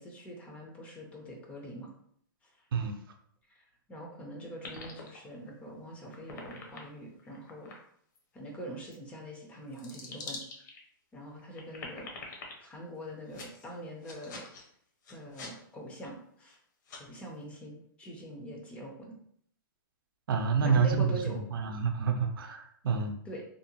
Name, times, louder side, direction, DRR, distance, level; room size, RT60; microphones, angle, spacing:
voice 1, 0.0-1.9 2.4-2.5 3.5-7.8 8.3-10.4 11.1-12.1 12.6-14.5 15.1-16.6 17.0-19.1 20.6-21.4 23.2-23.5, right 1 dB, 10° left, 0 dB, 0.4 m, -43 dB
sound 1, 4.6-5.7 6.1-7.8 8.2-8.3 8.9-9.0 9.7-10.8 11.4-12.5 13.3-13.7 14.0-14.6 15.0-15.5 16.0-16.1 16.5-16.6 16.9-17.0, left 3 dB, 55° left, 0.7 m, -45 dB
voice 2, 20.3-23.1, right 5 dB, 80° right, 5 dB, 0.5 m, -28 dB
2.6 x 2.1 x 2.7 m, 0.65 s
hypercardioid pair, 160°, 11 cm